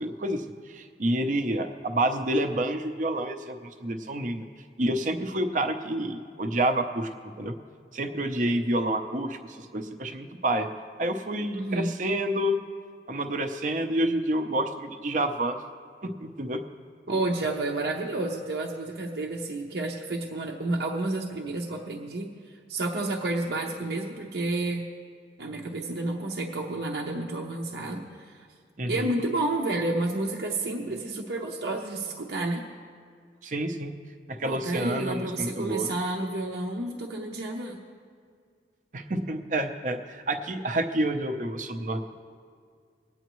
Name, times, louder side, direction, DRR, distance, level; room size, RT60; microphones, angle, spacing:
voice 1, 0.0-4.5 4.8-7.1 7.4-7.5 7.9-10.7 11.0-12.6 13.1-15.6 16.0-16.6 28.8-29.0 33.4-33.9 34.3-35.9 38.9-42.0, right 1 dB, 45° right, 7 dB, 0.7 m, -28 dB
voice 2, 11.5-11.9 17.1-22.3 22.7-24.8 25.4-28.3 28.9-32.6 34.4-37.8, right 2 dB, 70° right, -1 dB, 0.9 m, -30 dB
22.0 x 9.2 x 3.1 m, 2.1 s
head